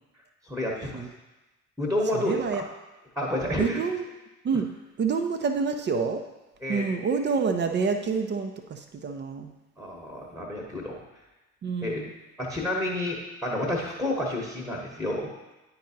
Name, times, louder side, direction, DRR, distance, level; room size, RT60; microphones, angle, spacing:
voice 1, 0.4-1.0 1.8-2.6 3.1-3.8 6.6-6.8 9.8-11.0 11.8-12.0 12.4-15.3, left 1 dB, ahead, -1 dB, 1.2 m, -30 dB
voice 2, 2.1-2.6 3.6-4.1 4.4-4.7 5.0-6.2 6.7-9.5 11.6-12.1, right 5 dB, 25° right, 6 dB, 0.6 m, -27 dB
10.0 x 4.0 x 2.8 m, 1.1 s
figure-of-eight pair, 55°, 41 cm